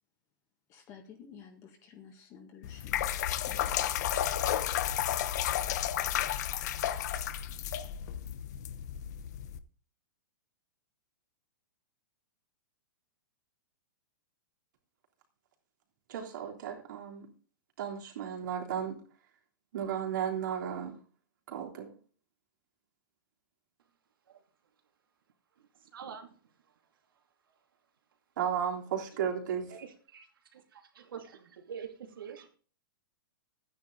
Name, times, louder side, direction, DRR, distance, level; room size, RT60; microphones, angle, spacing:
voice 1, 0.7-3.0 3.4-4.0, left 7 dB, 30° left, 2.0 m, -52 dB
sound 1, 2.6-9.6, left 11 dB, 55° left, 0.9 m, -32 dB
voice 2, 16.1-17.3 17.8-19.0 19.7-21.0 21.5-22.0 28.4-29.7, right 8 dB, 65° right, 3.4 m, -34 dB
voice 3, 25.6-26.8 27.2-27.3 29.7-32.6, right 7 dB, 85° right, 2.4 m, -47 dB
12.5 x 9.6 x 3.9 m
hypercardioid pair, 155°, 11 cm